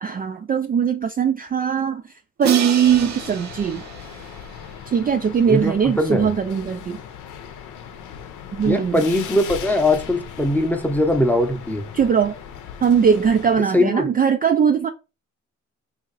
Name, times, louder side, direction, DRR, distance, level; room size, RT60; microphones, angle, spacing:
voice 1, 0.0-2.0 2.4-3.8 4.9-7.0 8.5-9.0 11.9-12.3 12.8-14.9, right 7 dB, 30° right, 0.4 m, -20 dB
Crash cymbal, 2.4-5.4, right 7 dB, 65° right, 0.7 m, -31 dB
sound 1, 2.8-13.6, left 7 dB, 80° left, 0.7 m, -38 dB
voice 2, 5.5-6.3 8.6-11.9 13.7-14.1, left 1 dB, 5° left, 0.7 m, -20 dB
2.9 x 2.7 x 3.9 m
cardioid pair, 90°, 30 cm